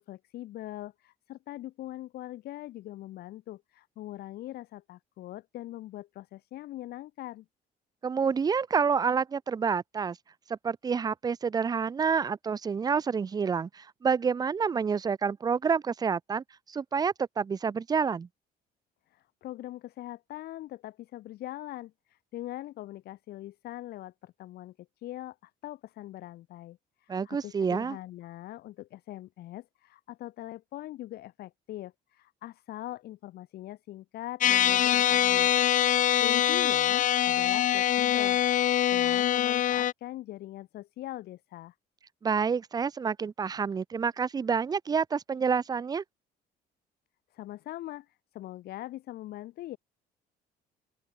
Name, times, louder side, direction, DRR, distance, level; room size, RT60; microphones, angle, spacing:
voice 1, 0.0-7.4 19.1-35.5 36.2-41.7 47.3-49.8, left 15 dB, 70° left, 1.0 m, -42 dB
voice 2, 8.0-10.2 10.5-18.3 27.1-28.0 42.2-46.0, right 6 dB, 25° right, 0.5 m, -28 dB
sound 1, 34.4-39.9, left 11 dB, 50° left, 0.6 m, -24 dB
open air
cardioid pair, 110°, 17 cm